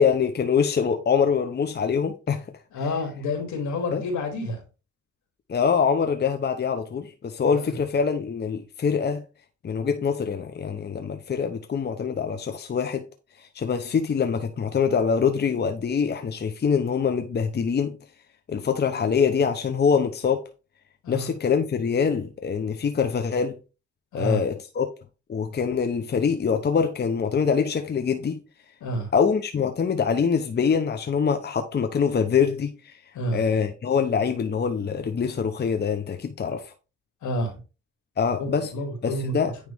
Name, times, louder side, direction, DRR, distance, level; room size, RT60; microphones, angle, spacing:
voice 1, 0.0-2.5 3.9-4.0 5.5-9.2 9.6-13.0 13.4-18.0 18.5-20.5 21.1-23.6 24.1-24.9 25.3-28.4 29.1-33.0 33.3-36.7 38.2-38.7 39.0-39.5, left 6 dB, 35° left, 0.8 m, -24 dB
voice 2, 2.7-4.6 7.5-7.7 21.0-21.3 24.1-24.4 28.8-29.1 33.1-33.4 37.2-37.6 38.4-39.4, left 1 dB, 75° left, 2.8 m, -29 dB
9.6 x 3.2 x 3.4 m
cardioid pair, 90°, 30 cm